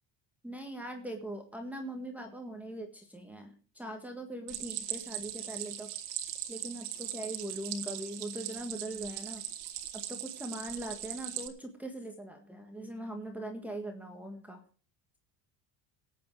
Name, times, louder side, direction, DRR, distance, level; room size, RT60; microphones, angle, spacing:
voice 1, 0.4-5.9 6.5-9.4 9.9-14.6, right 1 dB, 5° right, 2 dB, 1.6 m, -41 dB
Stream, 4.5-11.5, right 12 dB, 75° right, 2.0 m, -40 dB
19.0 x 8.3 x 4.7 m, 0.41 s
cardioid pair, 130°, 41 cm